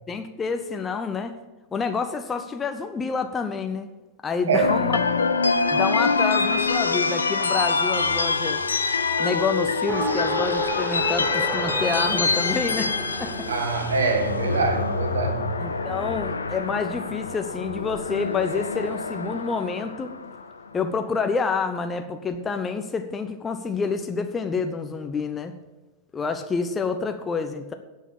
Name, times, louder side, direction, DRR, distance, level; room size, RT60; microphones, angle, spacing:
voice 1, 0.1-1.3 1.7-3.9 4.2-5.0 5.7-8.6 9.2-12.9 13.2-13.5 15.6-20.1 20.7-25.5 26.1-27.7, left 5 dB, 20° left, 7 dB, 0.8 m, -28 dB
sound 1, 4.6-20.8, left 4 dB, 75° left, 0.6 m, -25 dB
Race car auto racing, 9.9-16.2, right 6 dB, 25° right, 0.8 m, -34 dB
voice 2, 13.5-15.5, right 4 dB, 65° right, 5 dB, 1.9 m, -24 dB
10.0 x 6.5 x 8.6 m, 1.1 s
figure-of-eight pair, 90°, 0 cm